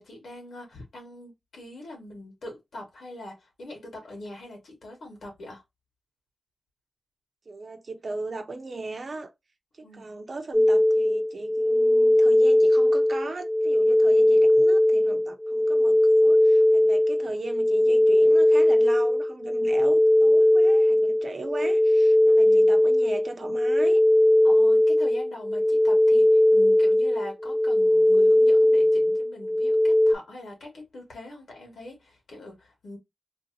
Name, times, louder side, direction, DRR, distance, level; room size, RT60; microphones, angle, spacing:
voice 1, 0.0-5.6 9.8-10.1 22.4-22.8 24.4-33.0, left 1 dB, 85° left, 1.8 m, -42 dB
voice 2, 7.5-9.3 9.8-24.0, right 3 dB, 60° right, 0.7 m, -37 dB
sound 1, 10.5-30.1, left 1 dB, 5° left, 0.4 m, -19 dB
3.3 x 2.7 x 2.6 m
cardioid pair, 50°, 0 cm